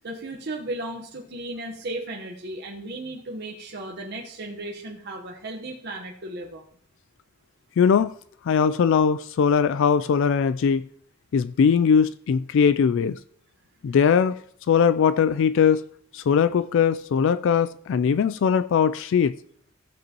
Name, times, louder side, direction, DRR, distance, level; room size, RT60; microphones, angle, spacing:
voice 1, 0.0-6.7, right 2 dB, 55° right, 1.1 m, -35 dB
voice 2, 7.8-8.1 8.5-10.8 11.3-13.2 13.8-14.4 14.7-15.8 16.1-19.4, left 6 dB, 65° left, 0.3 m, -20 dB
15.0 x 7.7 x 3.0 m
head